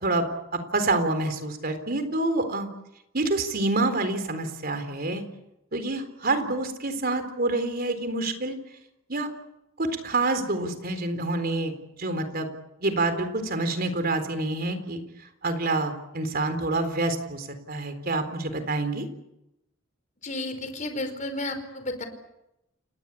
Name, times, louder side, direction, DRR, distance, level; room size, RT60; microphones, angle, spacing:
voice 1, 0.7-2.7 3.1-5.2 5.7-8.6 9.1-9.3 9.8-12.5 12.8-15.0 15.4-19.0, right 2 dB, 45° right, 8 dB, 4.0 m, -27 dB
voice 2, 20.2-22.0, left 2 dB, 35° left, 8 dB, 4.8 m, -32 dB
29.5 x 19.0 x 8.5 m, 0.86 s
head